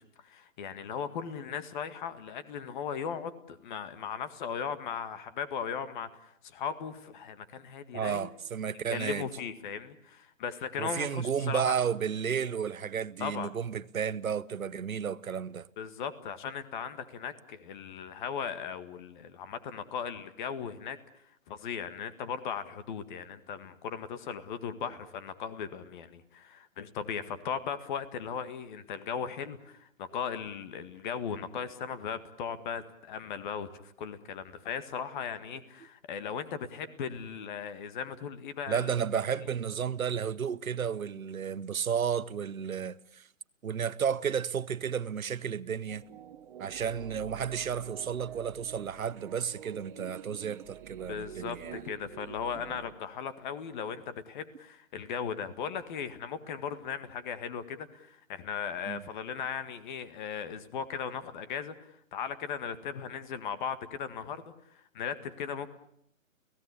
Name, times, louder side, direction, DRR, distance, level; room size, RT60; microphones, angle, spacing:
voice 1, 0.0-8.3 8.9-11.8 13.2-13.5 15.8-21.0 21.5-38.9 51.1-65.7, left 7 dB, 35° left, 1.9 m, -37 dB
voice 2, 7.9-9.3 10.8-15.7 24.8-24.9 38.7-43.2 43.6-46.0 46.6-51.8 58.9-59.0, right 7 dB, 90° right, 1.1 m, -32 dB
sound 1, 45.9-52.9, right 11 dB, 40° right, 1.4 m, -48 dB
30.0 x 17.0 x 8.4 m
hypercardioid pair, 150°, 41 cm